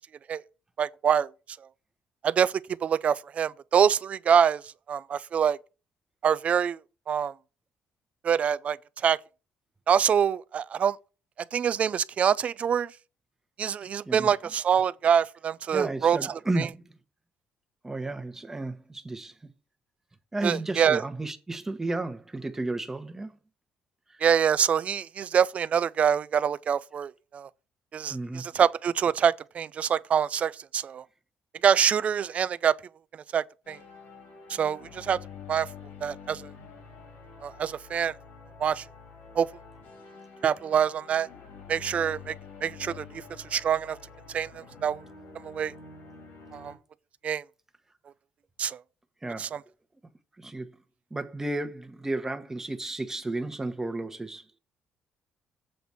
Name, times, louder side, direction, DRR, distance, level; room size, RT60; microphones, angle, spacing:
voice 1, 0.8-1.3 2.2-2.5 2.8-4.6 4.9-5.6 6.2-6.8 7.1-7.3 8.2-8.8 9.0-9.2 9.9-11.0 11.5-12.9 13.6-16.7 20.4-21.0 24.2-27.5 27.9-31.0 31.6-32.8 33.3-33.8 34.6-35.2 35.5-35.7 36.0-36.4 37.4-38.1 38.6-38.8 39.4-39.5 40.4-41.3 41.7-42.3 42.6-43.0 43.5-44.0 44.3-44.5 44.8-45.0 45.4-45.7 46.5-46.7 47.2-47.4 48.6-48.8 49.4-49.6, right 8 dB, 45° right, 0.4 m, -25 dB
voice 2, 15.7-16.8 17.8-19.3 20.3-23.3 24.1-24.3 28.1-28.4 49.2-49.5 50.4-50.7 51.1-54.4, right 2 dB, 15° right, 1.1 m, -33 dB
sound 1, 33.6-46.8, left 5 dB, 85° left, 2.7 m, -47 dB
7.8 x 4.0 x 6.9 m
cardioid pair, 110°, 3 cm